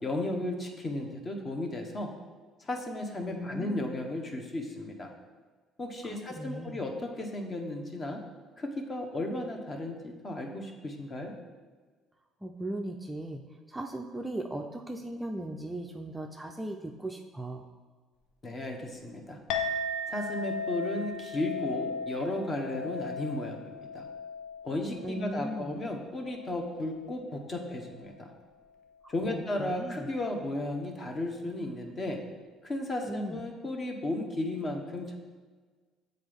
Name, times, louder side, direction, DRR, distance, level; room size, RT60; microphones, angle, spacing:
voice 1, 0.0-2.1 2.6-5.1 5.8-8.2 8.6-11.4 18.4-19.4 20.1-24.1 24.6-28.3 29.1-32.2 32.6-35.1, left 1 dB, 30° left, 3 dB, 0.9 m, -34 dB
voice 2, 3.2-3.9 6.0-6.8 12.4-17.6 25.0-25.8 29.0-30.1 33.1-33.4, right 1 dB, 10° right, 3 dB, 0.4 m, -38 dB
Chink clink, 19.5-28.2, left 3 dB, 75° left, 0.5 m, -37 dB
7.2 x 3.9 x 3.5 m, 1.4 s
cardioid pair, 95°, 0 cm